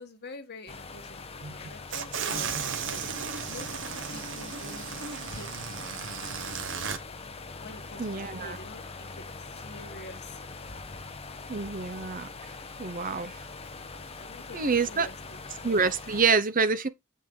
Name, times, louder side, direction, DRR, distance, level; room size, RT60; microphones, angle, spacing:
voice 1, 0.0-3.0 3.5-3.8 4.1-5.5 7.6-11.0 14.2-14.6 14.9-15.4, left 2 dB, 50° left, 1.6 m, -47 dB
sound 1, 0.7-16.3, left 3 dB, 25° left, 0.9 m, -43 dB
sound 2, 1.9-7.0, right 6 dB, 55° right, 1.2 m, -35 dB
voice 2, 8.0-8.6 11.5-12.3 12.8-13.3 14.5-15.1 15.6-16.9, right 5 dB, 40° right, 0.8 m, -27 dB
8.4 x 5.5 x 3.8 m
head